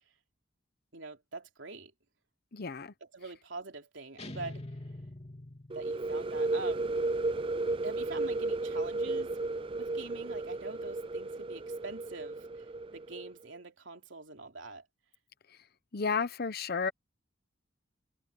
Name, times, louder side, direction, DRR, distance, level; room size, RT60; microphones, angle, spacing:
voice 1, 0.9-1.9 3.0-4.7 5.7-6.9 7.8-9.3 9.7-12.7 12.9-14.8, right 3 dB, 75° right, 3.6 m, -44 dB
voice 2, 2.5-2.9 15.9-16.9, left 5 dB, 55° left, 0.9 m, -32 dB
sound 1, 4.2-6.2, left 1 dB, 35° left, 2.9 m, -44 dB
sound 2, 5.7-13.3, right 2 dB, 30° right, 0.5 m, -34 dB
head